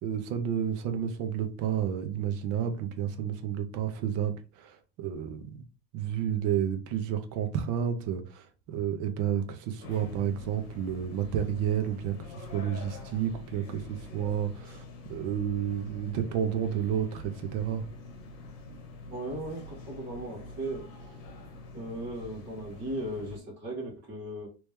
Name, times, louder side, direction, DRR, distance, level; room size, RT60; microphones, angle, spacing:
voice 1, 0.0-5.4 5.9-8.5 8.7-14.8 15.1-17.8, right 9 dB, 50° right, 0.7 m, -31 dB
sound 1, 9.8-23.4, left 2 dB, 45° left, 1.2 m, -45 dB
voice 2, 19.1-21.0 21.7-24.5, right 1 dB, 35° right, 1.6 m, -37 dB
3.2 x 3.1 x 3.4 m
cardioid pair, 165°, 33 cm